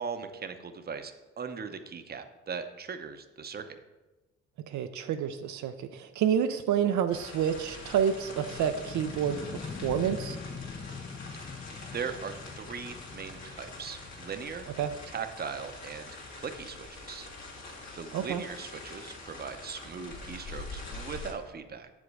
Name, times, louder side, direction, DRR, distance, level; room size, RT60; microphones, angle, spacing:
voice 1, 0.0-3.8 11.9-14.7 15.1-17.3 17.9-21.9, right 6 dB, 30° right, 8 dB, 0.7 m, -39 dB
voice 2, 4.7-10.4 14.8-14.9 18.1-18.4, right 8 dB, 70° right, 8 dB, 0.5 m, -29 dB
sound 1, 6.2-16.9, left 5 dB, 25° left, 0.5 m, -44 dB
sound 2, 7.1-21.3, left 3 dB, 65° left, 2.2 m, -44 dB
7.4 x 5.2 x 4.8 m, 1.1 s
cardioid pair, 90°, 30 cm